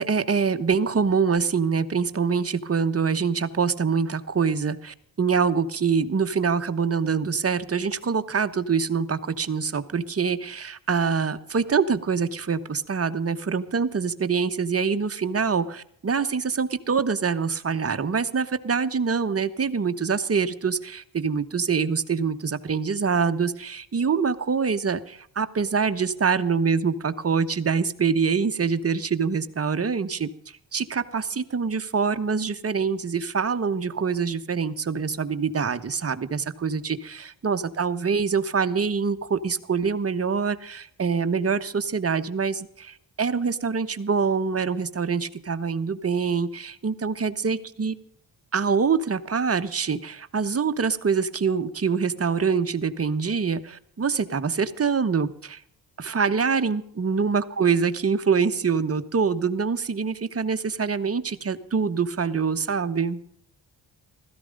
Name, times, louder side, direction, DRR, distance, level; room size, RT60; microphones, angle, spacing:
voice 1, 0.0-30.3 30.7-48.0 48.5-55.6 56.0-63.2, right 5 dB, 35° right, 9 dB, 1.2 m, -25 dB
16.0 x 14.0 x 5.3 m, 0.65 s
cardioid pair, 80°, 42 cm